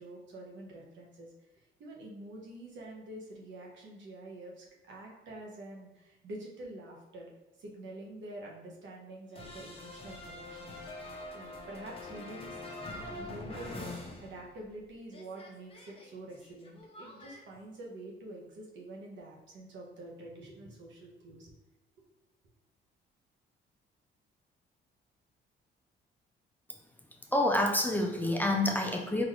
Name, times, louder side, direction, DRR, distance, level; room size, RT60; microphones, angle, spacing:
voice 1, 0.0-1.3 1.8-7.3 7.6-11.0 11.3-12.6 13.2-21.5, right 1 dB, 70° right, -2 dB, 1.2 m, -47 dB
sound 1, 9.3-14.8 15.1-17.4, left 2 dB, 30° left, 0.9 m, -44 dB
voice 2, 27.3-29.2, left 1 dB, 10° left, 1 dB, 0.5 m, -27 dB
4.0 x 2.9 x 3.1 m, 1.0 s
cardioid pair, 90°, 20 cm